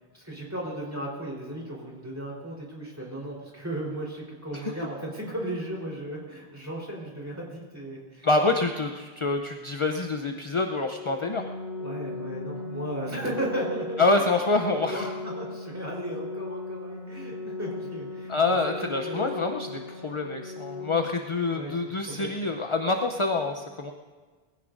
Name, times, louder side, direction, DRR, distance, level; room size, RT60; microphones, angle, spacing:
voice 1, 0.1-8.3 11.8-14.3 14.9-18.3 19.0-19.3 21.5-21.8 22.1-22.4, right 1 dB, 15° right, -3 dB, 3.9 m, -35 dB
voice 2, 8.2-11.5 14.0-15.1 18.3-23.9, left 3 dB, 35° left, 4 dB, 0.7 m, -26 dB
Organ, 10.9-21.9, left 3 dB, 65° left, 3.2 m, -38 dB
22.0 x 16.5 x 2.6 m, 1.4 s
omnidirectional pair, 1.0 m